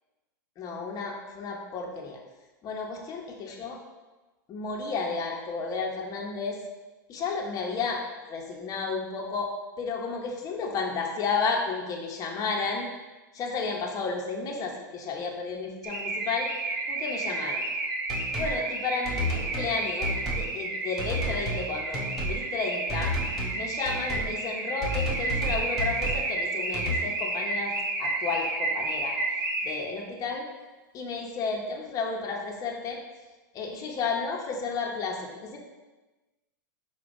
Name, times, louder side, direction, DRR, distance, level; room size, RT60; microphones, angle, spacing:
voice 1, 0.6-2.2 2.6-3.8 4.5-6.6 7.1-8.0 8.3-12.9 13.3-16.5 16.9-17.6 18.3-23.1 23.5-27.7 28.0-29.1 29.6-30.4 30.9-33.0 33.5-35.6, left 4 dB, 30° left, 0 dB, 0.8 m, -32 dB
Car / Alarm, 15.8-30.0, right 2 dB, 80° right, 0.9 m, -31 dB
sound 1, 18.1-18.5 19.0-19.7 20.0-20.5 21.0-21.7 21.9-22.4 22.9-23.6 23.8-24.3 24.8-26.3 26.7-27.0, equal, ahead, 1.5 m, -31 dB
4.9 x 2.3 x 4.7 m, 1.2 s
hypercardioid pair, 105°, 11 cm